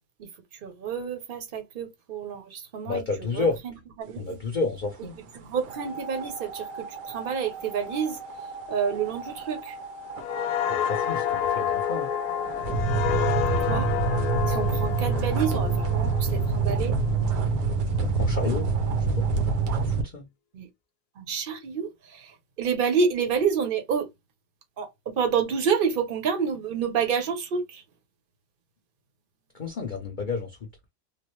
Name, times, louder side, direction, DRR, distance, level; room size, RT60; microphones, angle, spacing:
voice 1, 0.6-3.0 3.3-4.3 5.2-8.2 8.7-9.8 13.6-13.9 14.5-16.9 20.5-20.7 21.2-24.1 24.8-27.8, right 6 dB, 45° right, 0.7 m, -29 dB
voice 2, 2.9-3.6 4.2-5.1 10.7-12.1 18.0-19.3 19.8-20.3 29.6-30.5, left 4 dB, 50° left, 0.5 m, -30 dB
sound 1, 5.6-20.0, right 4 dB, 85° right, 1.4 m, -28 dB
sound 2, 10.2-17.6 18.0-18.3, left 10 dB, 75° left, 1.0 m, -29 dB
3.7 x 2.1 x 3.0 m
omnidirectional pair, 1.8 m